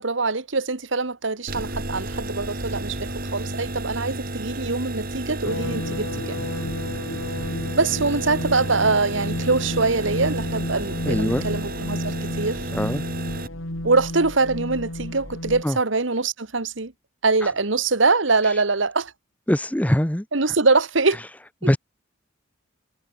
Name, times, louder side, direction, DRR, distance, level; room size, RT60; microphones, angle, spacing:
voice 1, 0.0-6.4 7.7-12.6 13.8-16.9 17.2-19.1 20.3-21.2 21.6-21.7, right 3 dB, 65° right, 1.6 m, -23 dB
sound 1, 1.5-13.5, right 1 dB, 45° right, 7.5 m, -32 dB
sound 2, 5.4-15.6, left 1 dB, 75° left, 3.6 m, -31 dB
voice 2, 11.0-11.4 12.7-13.0 15.6-15.8 17.4-17.5 19.5-20.3 21.6-21.8, equal, 5° left, 0.8 m, -22 dB
head